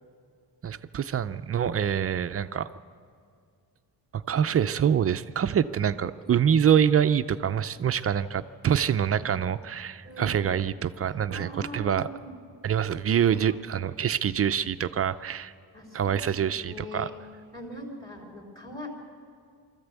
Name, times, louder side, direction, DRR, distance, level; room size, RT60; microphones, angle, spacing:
voice 1, 0.6-2.7 4.1-12.1 12.6-15.5 15.9-17.1, right 8 dB, 40° right, 12 dB, 0.5 m, -25 dB
voice 2, 10.0-10.4 11.3-12.3 13.4-13.6 15.7-17.1 17.5-18.9, equal, 10° left, -4 dB, 3.1 m, -42 dB
23.0 x 14.0 x 8.2 m, 2.2 s
wide cardioid pair, 160°, 39 cm